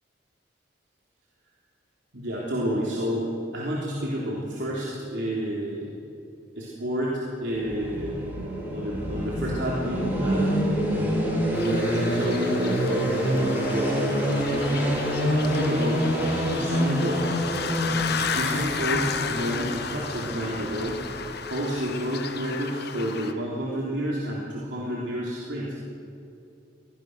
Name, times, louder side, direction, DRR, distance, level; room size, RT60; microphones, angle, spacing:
voice 1, 2.1-5.9 6.6-8.1 8.7-10.6 11.6-16.0 16.5-17.3 18.3-21.0 21.4-25.8, equal, 75° right, -5 dB, 3.5 m, -30 dB
sound 1, 7.5-21.4, equal, 10° right, 5.1 m, -27 dB
sound 2, 11.5-23.3, left 6 dB, 60° left, 1.2 m, -33 dB
23.0 x 18.5 x 6.3 m, 2.6 s
head